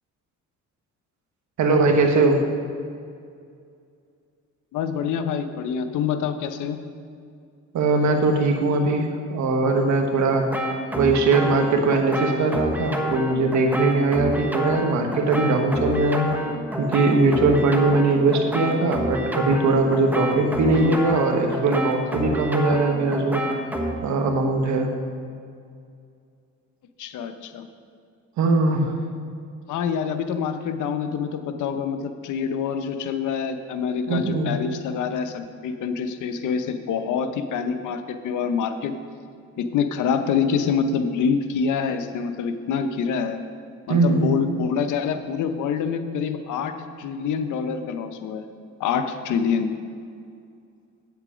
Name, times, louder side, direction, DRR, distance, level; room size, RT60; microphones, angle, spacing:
voice 1, 1.6-2.4 7.7-10.4 11.0-16.3 16.8-23.6 24.0-24.9 28.4-28.9 34.1-34.5 43.9-44.3, right 3 dB, 70° right, 4 dB, 1.3 m, -20 dB
voice 2, 4.7-6.8 20.7-20.9 27.0-27.7 29.7-38.9 39.6-43.4 43.9-48.4 48.8-49.7, left 6 dB, 80° left, 8 dB, 0.8 m, -26 dB
sound 1, 10.3-23.9, right 1 dB, 5° right, 1.1 m, -28 dB
8.6 x 8.1 x 5.0 m, 2.3 s
cardioid pair, 90°, 30 cm